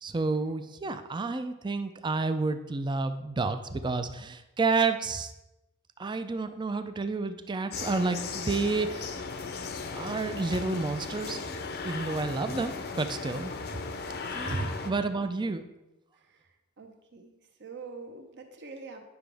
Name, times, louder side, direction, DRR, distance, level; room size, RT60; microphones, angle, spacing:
voice 1, 0.0-5.3 6.0-9.1 9.9-11.4 11.8-13.8 14.3-15.6, right 3 dB, 20° right, 10 dB, 0.4 m, -30 dB
sound 1, 7.7-14.9, left 4 dB, 50° left, 0.7 m, -37 dB
voice 2, 16.8-17.3 17.6-19.0, right 4 dB, 55° right, 4 dB, 1.0 m, -45 dB
9.7 x 6.0 x 3.4 m, 0.99 s
head